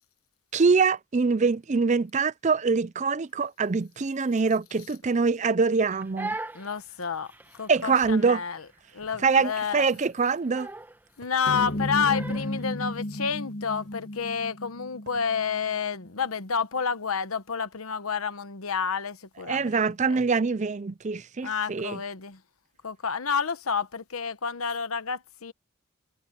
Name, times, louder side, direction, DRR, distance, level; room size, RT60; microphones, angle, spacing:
voice 1, 0.5-6.4 7.7-8.4 9.2-10.7 19.5-22.0, right 4 dB, 35° right, 0.5 m, -24 dB
Crying sobbing, 5.8-12.7, right 2 dB, 10° right, 1.2 m, -41 dB
voice 2, 6.5-8.6 8.9-9.8 11.2-20.2 21.4-22.4 22.8-25.5, left 6 dB, 90° left, 1.1 m, -30 dB
sound 1, 9.6-9.7 10.6-10.7 11.2-11.5 12.8-12.9 13.6-14.0 14.4-14.5 15.0-15.2, right 2 dB, 55° right, 6.8 m, -56 dB
sound 2, 11.5-16.1, left 1 dB, 50° left, 1.3 m, -34 dB
head